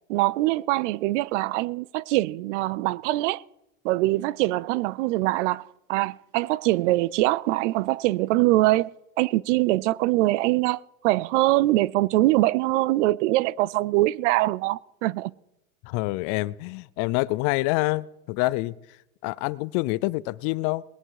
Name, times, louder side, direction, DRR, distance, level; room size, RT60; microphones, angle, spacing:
voice 1, 0.1-3.4 3.8-5.6 5.9-8.9 9.2-15.3, right 18 dB, 60° right, 0.6 m, -23 dB
voice 2, 15.8-18.8 19.2-20.8, left 21 dB, 45° left, 0.5 m, -26 dB
20.0 x 10.5 x 4.8 m
supercardioid pair, 130°, 40 cm